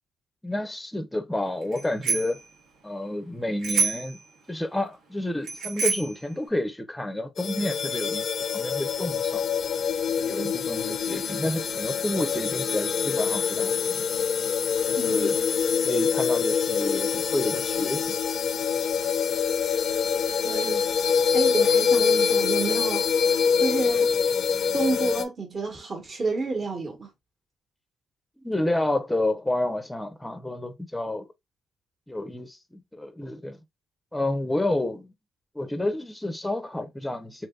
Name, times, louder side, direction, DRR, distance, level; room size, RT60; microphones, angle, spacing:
voice 1, 0.4-2.4 2.8-4.2 4.5-9.4 10.2-14.1 14.8-15.4 15.8-18.2 28.4-31.3 32.1-33.6 34.1-35.1 35.5-37.5, left 1 dB, 10° left, 0.6 m, -30 dB
Bicycle bell, 1.7-2.4 3.6-4.2 5.4-6.2, right 5 dB, 80° right, 1.2 m, -27 dB
sound 1, 7.4-25.2, left 7 dB, 55° left, 0.4 m, -25 dB
voice 2, 15.0-15.3 20.4-20.8 21.3-24.1 24.7-27.1, right 3 dB, 40° right, 1.2 m, -30 dB
3.3 x 3.0 x 2.3 m
cardioid pair, 90°, 0 cm